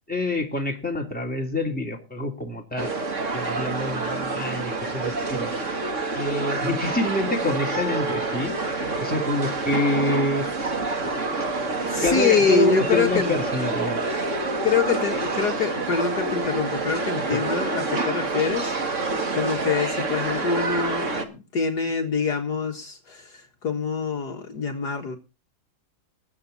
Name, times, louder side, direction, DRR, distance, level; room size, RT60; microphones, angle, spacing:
voice 1, 0.1-3.0 3.3-5.5 6.1-8.5 9.0-10.5 12.0-14.0 17.3-17.4, left 2 dB, 5° left, 2.9 m, -26 dB
sound 1, 2.8-21.2, right 3 dB, 40° right, 2.2 m, -27 dB
voice 2, 11.9-13.4 14.6-25.2, left 5 dB, 55° left, 2.1 m, -25 dB
21.0 x 8.2 x 4.1 m
omnidirectional pair, 2.1 m